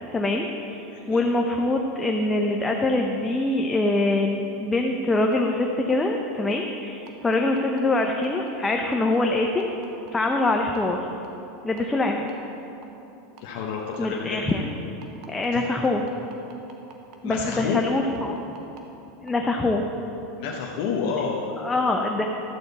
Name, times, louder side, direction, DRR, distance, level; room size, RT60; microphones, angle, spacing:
voice 1, 0.1-9.7 10.1-11.0 11.6-12.3 14.0-14.6 15.3-16.0 17.2-18.4 19.2-19.8 21.6-22.3, left 2 dB, 15° left, 2 dB, 0.7 m, -24 dB
voice 2, 0.9-1.2 13.4-14.4 15.5-15.7 17.2-17.8 20.4-21.4, left 6 dB, 65° left, -2 dB, 1.0 m, -29 dB
sound 1, 5.3-5.4 5.9-6.0 6.5-6.6 7.1-10.8 11.2-11.4 11.8-11.9 12.3-12.4 12.8-12.9 13.4-13.5 13.9-14.0 14.5-14.6 15.0-18.8 19.3-19.4, right 8 dB, 55° right, 1.2 m, -46 dB
12.5 x 8.2 x 4.1 m, 3.0 s
supercardioid pair, 125°, 0 cm